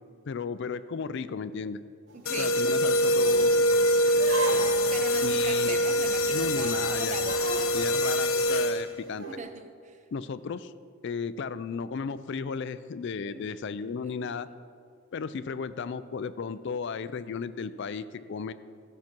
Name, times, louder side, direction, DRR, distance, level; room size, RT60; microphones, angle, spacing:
voice 1, 0.3-1.8 2.4-3.6 5.2-5.8 6.3-7.2 7.7-9.3 10.1-10.7 11.0-14.5 15.1-18.5, left 5 dB, 55° left, 14 dB, 0.4 m, -34 dB
voice 2, 2.1-2.6 4.9-7.4 9.2-10.0 13.2-13.5 14.0-14.3, right 4 dB, 35° right, 8 dB, 0.6 m, -40 dB
sound 1, 2.1-2.2 2.6-2.7 3.2-3.5 4.2-4.9 5.5-5.7 6.1-6.2 6.4-6.6 7.2-7.7 9.1-9.4, right 2 dB, 55° right, 1.7 m, -35 dB
sound 2, 2.3-9.0, equal, 70° left, 0.7 m, -24 dB
14.5 x 5.8 x 6.0 m, 2.2 s
head